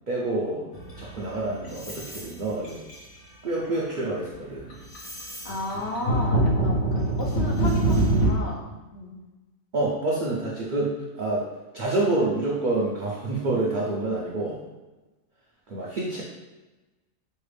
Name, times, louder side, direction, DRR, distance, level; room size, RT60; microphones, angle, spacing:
voice 1, 0.1-0.7 1.0-2.8 3.4-4.8 9.7-11.5 11.7-14.6 15.7-16.2, right 2 dB, 50° right, -4 dB, 0.6 m, -27 dB
sound 1, 0.7-2.3 2.6-3.2 3.6-3.9 4.3-8.3, right 1 dB, 80° left, 1.6 m, -25 dB
voice 2, 5.4-9.2, left 2 dB, 60° left, -2 dB, 0.9 m, -34 dB
5.5 x 2.4 x 3.3 m, 1.1 s
omnidirectional pair, 1.4 m